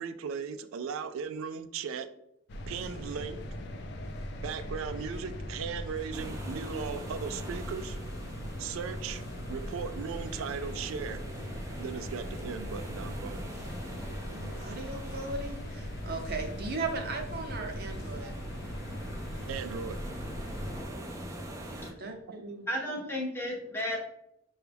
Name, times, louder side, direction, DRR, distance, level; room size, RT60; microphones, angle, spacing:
voice 1, 0.0-2.1 2.7-3.4 4.4-8.0 8.6-9.2 9.5-11.2 11.8-13.4 19.5-20.0, right 6 dB, 85° right, 0.3 m, -37 dB
sound 1, 2.5-20.8, equal, 55° left, 0.5 m, -40 dB
sound 2, 6.1-21.9, right 1 dB, 15° right, 0.4 m, -44 dB
voice 2, 14.2-18.3 21.6-22.6, right 3 dB, 50° right, 0.7 m, -38 dB
voice 3, 22.7-24.0, equal, 10° left, 0.7 m, -33 dB
5.9 x 2.3 x 3.3 m
head